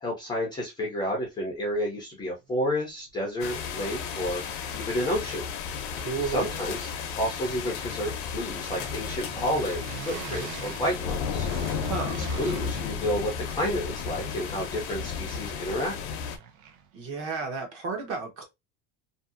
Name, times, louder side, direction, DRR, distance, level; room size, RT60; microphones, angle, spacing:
voice 1, 0.0-4.4 4.7-5.5 6.2-6.9 7.2-11.5 12.1-16.2, equal, 15° left, 0.4 m, -30 dB
sound 1, 3.1-3.2 3.4-4.6 4.8-17.0, right 7 dB, 90° right, 0.7 m, -46 dB
sound 2, 3.4-16.4, left 6 dB, 60° left, 0.6 m, -33 dB
voice 2, 6.0-6.7 11.8-12.2 16.9-18.4, right 4 dB, 40° right, 0.8 m, -33 dB
2.6 x 2.3 x 2.4 m
cardioid pair, 170°, 35 cm